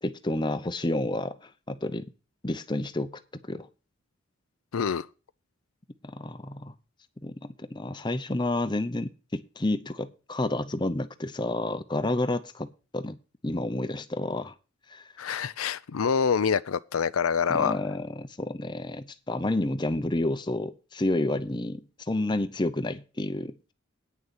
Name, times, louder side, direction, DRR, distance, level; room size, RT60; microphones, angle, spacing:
voice 1, 0.0-1.4 1.7-2.1 2.4-3.2 3.5-3.7 6.0-6.7 7.2-12.7 12.9-13.2 13.4-14.5 14.9-15.0 17.5-23.7, left 2 dB, 20° left, 0.7 m, -30 dB
voice 2, 4.7-5.1 15.2-17.7, left 6 dB, 85° left, 0.5 m, -26 dB
9.5 x 6.5 x 7.1 m
head